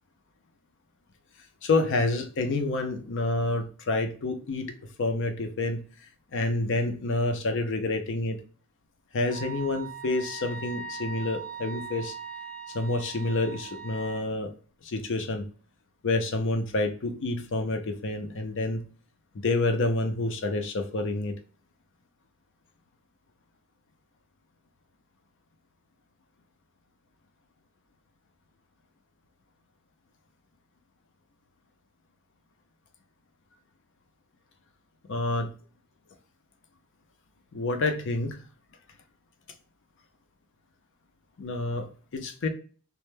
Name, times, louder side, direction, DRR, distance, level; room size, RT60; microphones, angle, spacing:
voice 1, 1.6-5.8 6.3-8.4 9.1-12.1 12.7-14.5 14.8-15.5 16.0-18.8 19.3-21.3 35.1-35.5 37.5-38.4 41.4-42.5, left 2 dB, 55° left, 6 dB, 0.5 m, -28 dB
Wind instrument woodwind instrument, 9.3-14.2, right 5 dB, 85° left, 1.0 m, -40 dB
2.1 x 2.1 x 3.1 m, 0.39 s
head